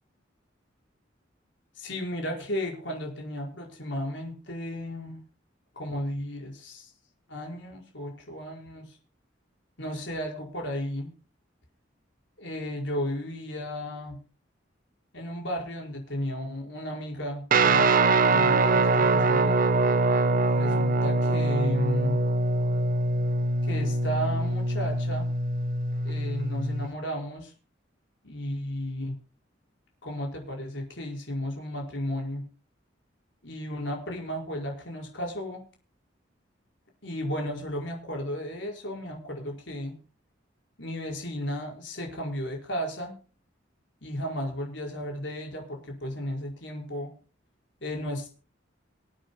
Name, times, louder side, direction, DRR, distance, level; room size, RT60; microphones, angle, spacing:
voice 1, 1.7-5.2 5.7-6.9 7.3-9.0 9.8-11.1 12.4-14.2 15.1-17.9 18.3-19.6 20.4-22.2 23.6-25.3 26.0-27.5 28.2-29.1 30.0-32.4 33.4-35.6 37.0-39.9 40.8-43.1 44.0-47.1 47.8-48.3, equal, 65° left, 1 dB, 5.0 m, -34 dB
Guitar, 17.5-26.9, right 2 dB, 45° right, 1.1 m, -23 dB
26.5 x 9.1 x 2.2 m, 0.35 s
head